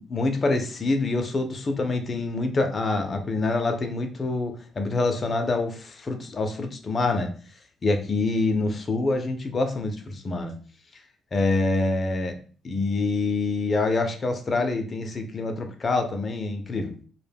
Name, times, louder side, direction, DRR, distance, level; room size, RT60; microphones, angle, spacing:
voice 1, 0.0-7.3 7.8-10.5 11.3-12.3 12.6-16.9, left 3 dB, 35° left, 5 dB, 0.5 m, -26 dB
2.1 x 2.1 x 3.3 m, 0.41 s
cardioid pair, 90°, 0 cm